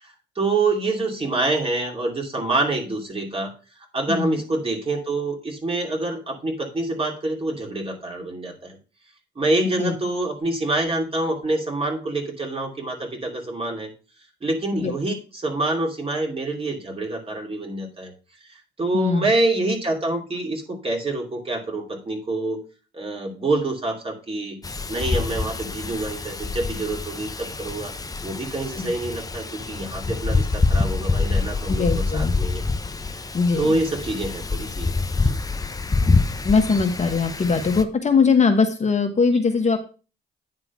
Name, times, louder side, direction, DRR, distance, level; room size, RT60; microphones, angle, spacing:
voice 1, 0.0-3.5 3.9-8.8 9.4-13.9 14.4-18.1 18.5-22.6 22.9-24.6 24.9-27.9 28.2-32.6 33.5-34.9 35.2-35.4, right 2 dB, 30° right, 1 dB, 2.7 m, -26 dB
voice 2, 4.1-4.4 9.6-9.9 14.7-14.9 18.9-19.3 31.7-32.3 33.3-33.8 36.4-39.8, left 4 dB, 35° left, 5 dB, 1.3 m, -21 dB
Wind, 24.6-37.8, left 3 dB, 20° left, 0.8 m, -26 dB
9.6 x 3.8 x 6.0 m, 0.35 s
cardioid pair, 90°, 20 cm